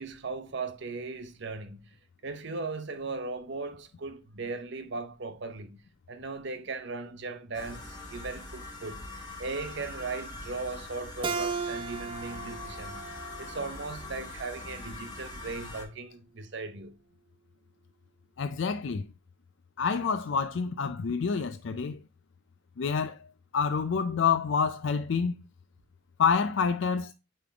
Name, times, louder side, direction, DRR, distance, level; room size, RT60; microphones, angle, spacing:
voice 1, 0.0-1.8 2.2-5.8 6.1-9.0 9.4-13.0 13.4-17.0, right 3 dB, 60° right, 0.8 m, -38 dB
sound 1, 7.5-15.8, left 2 dB, 20° left, 1.3 m, -43 dB
Keyboard (musical), 11.2-14.5, right 5 dB, 25° right, 0.5 m, -36 dB
voice 2, 18.4-19.0 19.8-22.0 22.8-23.2 23.5-25.3 26.2-27.1, left 6 dB, 60° left, 0.4 m, -27 dB
8.6 x 3.6 x 3.3 m
head